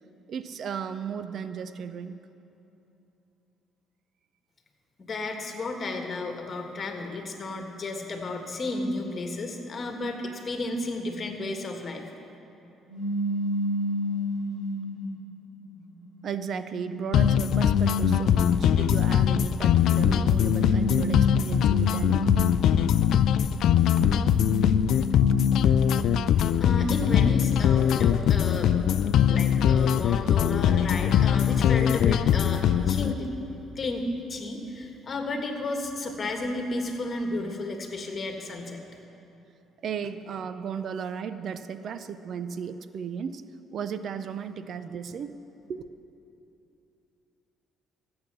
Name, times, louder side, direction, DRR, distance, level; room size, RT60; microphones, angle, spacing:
voice 1, 0.3-2.2 16.2-22.3 24.0-24.2 26.4-26.5 39.8-43.4 43.7-45.4 45.7-45.9, right 7 dB, 55° right, 11 dB, 0.5 m, -35 dB
voice 2, 5.0-12.0 26.6-28.7 29.3-33.3 33.7-38.8, left 2 dB, 35° left, 3 dB, 1.5 m, -33 dB
sound 1, 12.9-15.1 15.7-18.8 20.0-22.9 23.4-26.4, equal, 40° right, 2.8 m, -32 dB
sound 2, 17.1-33.1, left 9 dB, 70° left, 0.4 m, -22 dB
13.0 x 8.8 x 6.8 m, 2.9 s
cardioid pair, 105°, 0 cm